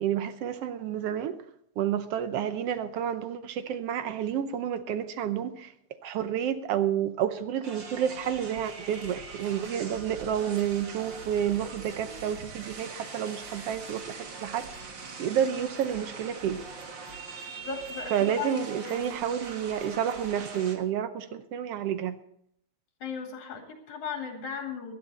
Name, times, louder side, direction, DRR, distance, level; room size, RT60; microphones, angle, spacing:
voice 1, 0.0-1.4 1.8-5.7 6.0-14.7 15.2-16.6 18.1-22.2, right 9 dB, 70° right, 10 dB, 1.5 m, -30 dB
sound 1, 7.6-20.8, right 4 dB, 45° right, 1.9 m, -42 dB
voice 2, 17.7-19.1 23.0-24.9, left 6 dB, 80° left, 3 dB, 3.6 m, -37 dB
18.0 x 11.5 x 4.1 m, 0.71 s
omnidirectional pair, 3.4 m